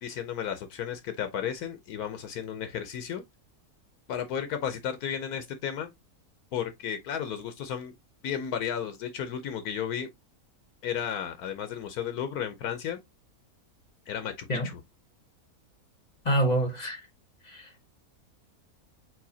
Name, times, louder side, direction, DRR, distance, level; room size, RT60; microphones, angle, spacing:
voice 1, 0.0-3.2 4.1-5.9 6.5-7.9 8.2-10.1 10.8-13.0 14.1-14.8, left 8 dB, 75° left, 1.2 m, -33 dB
voice 2, 16.2-17.0 17.4-17.9, right 1 dB, 35° left, 0.9 m, -27 dB
4.8 x 3.8 x 2.7 m
omnidirectional pair, 1.6 m